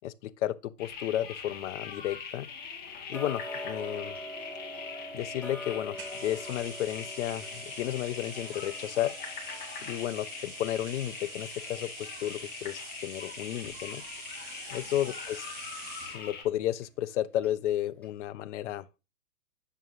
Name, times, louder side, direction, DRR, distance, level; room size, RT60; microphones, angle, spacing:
voice 1, 0.0-2.5 3.1-4.2 5.1-9.1 9.8-14.0 14.7-15.4 16.1-18.9, left 12 dB, 55° left, 0.6 m, -33 dB
sound 1, 0.8-16.4, left 6 dB, 20° left, 1.1 m, -42 dB
Tick-tock, 3.1-14.0 14.4-14.5 15.0-15.1 15.6-15.7 16.2-16.3 16.8-16.9 17.4-17.5 18.0-18.1, equal, 5° left, 1.5 m, -45 dB
sound 2, 6.0-16.2, right 5 dB, 25° right, 2.6 m, -46 dB
7.6 x 6.0 x 2.5 m
hypercardioid pair, 130°, 44 cm